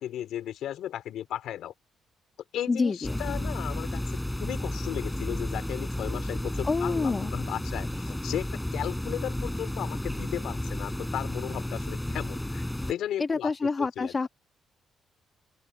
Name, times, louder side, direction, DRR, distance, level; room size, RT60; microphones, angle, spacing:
voice 1, 0.0-1.7 2.5-4.0 4.4-13.5 13.8-14.2, left 11 dB, 80° left, 3.1 m, -35 dB
voice 2, 2.7-3.2 6.6-7.3 13.2-14.3, left 4 dB, 30° left, 1.4 m, -27 dB
sound 1, 3.0-12.9, left 1 dB, 5° left, 4.7 m, -32 dB
open air
cardioid pair, 90°, 0 cm